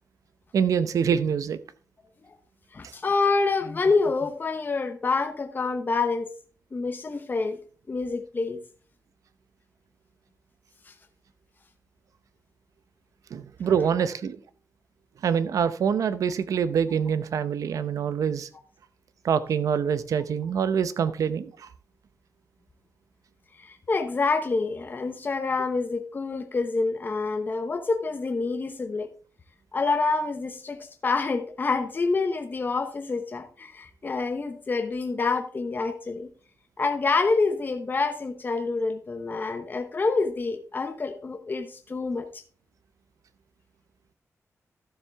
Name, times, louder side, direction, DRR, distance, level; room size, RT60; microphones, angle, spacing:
voice 1, 0.5-1.6 13.3-14.4 15.2-18.5 19.2-21.7, right 7 dB, 90° right, 13 dB, 0.7 m, -25 dB
voice 2, 2.7-6.3 6.7-7.6 7.9-8.6 23.6-29.1 29.7-36.3 36.8-42.3, left 4 dB, 35° left, 6 dB, 0.9 m, -27 dB
13.0 x 7.3 x 3.5 m, 0.40 s
wide cardioid pair, 125°, 6 cm